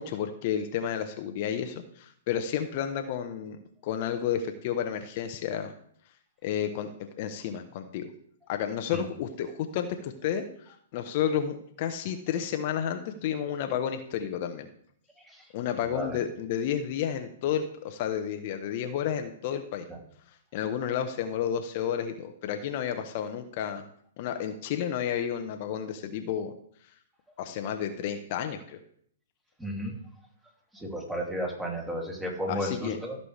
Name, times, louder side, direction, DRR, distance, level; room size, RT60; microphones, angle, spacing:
voice 1, 0.0-5.7 6.4-6.9 7.2-8.1 8.5-14.7 15.5-19.8 20.5-23.8 24.2-26.5 27.4-28.8 32.5-33.0, left 9 dB, 50° left, 7 dB, 1.0 m, -31 dB
voice 2, 29.6-29.9 30.7-33.2, equal, 5° right, -1 dB, 2.8 m, -33 dB
14.5 x 6.7 x 3.3 m, 0.64 s
hypercardioid pair, 115°, 0 cm